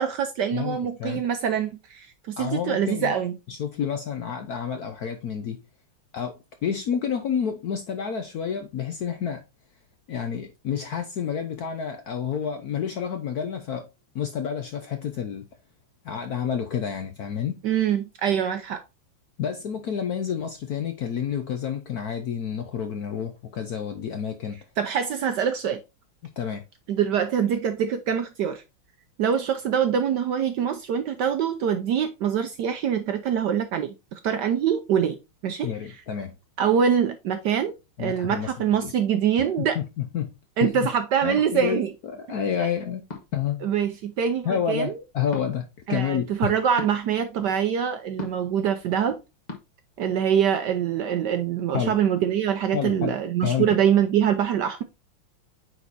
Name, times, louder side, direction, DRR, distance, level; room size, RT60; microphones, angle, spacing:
voice 1, 0.0-3.3 17.6-18.8 24.8-25.8 26.9-28.6 29.2-35.2 35.4-35.7 36.6-37.7 38.0-39.8 40.6-41.9 43.6-45.0 45.9-49.2 50.0-54.8, right 8 dB, 70° right, 1.0 m, -24 dB
voice 2, 0.5-1.2 2.4-3.2 3.5-5.6 6.1-9.4 10.1-13.9 14.1-15.5 16.0-17.6 19.4-24.6 26.4-26.6 35.6-36.3 38.0-38.9 39.6-40.3 40.6-40.9 41.2-43.0 43.3-43.7 44.4-46.5 51.7-52.0 52.7-53.1 53.4-53.8, left 8 dB, 65° left, 0.9 m, -29 dB
sound 1, 41.4-41.5 43.1-43.4 45.3-45.5 46.8-47.0 48.2-48.5 49.5-49.6, left 3 dB, 30° left, 0.9 m, -36 dB
8.9 x 4.2 x 2.6 m
omnidirectional pair, 2.3 m